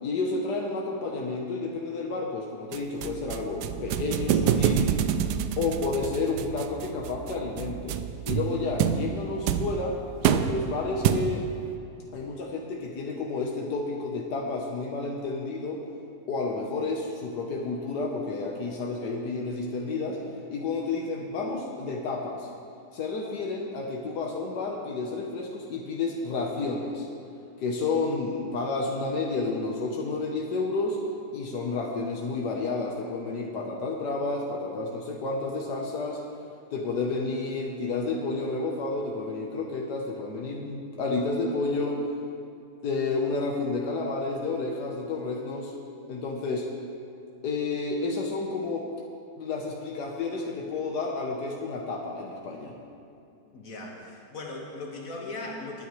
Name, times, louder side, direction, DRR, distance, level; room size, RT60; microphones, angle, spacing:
voice 1, 0.0-4.9 5.6-8.0 8.2-10.0 10.3-11.4 12.1-15.8 16.3-20.2 20.5-22.5 22.9-27.1 27.6-31.0 31.3-36.2 36.7-42.0 42.8-45.7 46.1-46.7 47.4-48.9 49.4-52.7, left 3 dB, 85° left, 0 dB, 1.6 m, -30 dB
sound 1, 2.7-11.6, right 8 dB, 90° right, 1.2 m, -28 dB
voice 2, 53.5-55.9, left 2 dB, 55° left, -1 dB, 2.0 m, -38 dB
19.5 x 9.7 x 3.2 m, 2.6 s
omnidirectional pair, 1.7 m